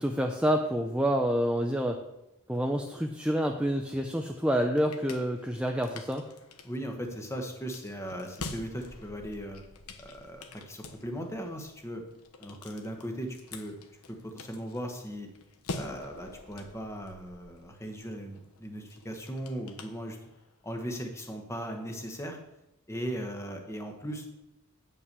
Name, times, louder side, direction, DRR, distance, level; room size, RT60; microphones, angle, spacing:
voice 1, 0.0-2.0 2.5-6.3, equal, 5° right, 3 dB, 0.5 m, -28 dB
sound 1, 4.3-20.6, left 3 dB, 75° left, 1.0 m, -47 dB
voice 2, 6.6-9.6 10.0-12.0 12.4-13.8 14.1-15.3 15.7-20.2 20.6-22.4 22.9-24.3, equal, 10° left, 4 dB, 1.2 m, -38 dB
9.1 x 5.7 x 6.8 m, 0.92 s
head